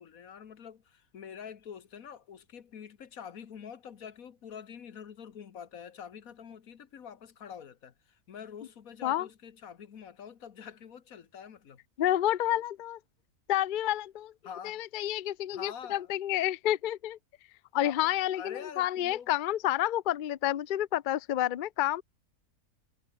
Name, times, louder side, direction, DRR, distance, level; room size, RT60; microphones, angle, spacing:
voice 1, 0.0-11.8 14.4-14.8 15.5-16.1 17.8-19.3, left 8 dB, 65° left, 1.7 m, -46 dB
voice 2, 12.0-13.0 13.5-14.3 14.6-17.2 17.7-22.0, left 13 dB, 90° left, 0.4 m, -29 dB
omnidirectional pair, 1.7 m